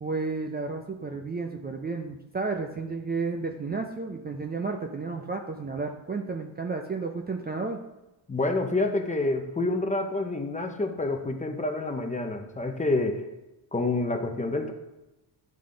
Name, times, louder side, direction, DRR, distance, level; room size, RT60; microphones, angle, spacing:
voice 1, 0.0-7.8, right 4 dB, 20° right, 3 dB, 0.5 m, -32 dB
voice 2, 8.3-13.2 13.7-14.7, left 2 dB, 15° left, 5 dB, 0.7 m, -28 dB
10.5 x 3.6 x 3.8 m, 1.0 s
cardioid pair, 110°, 48 cm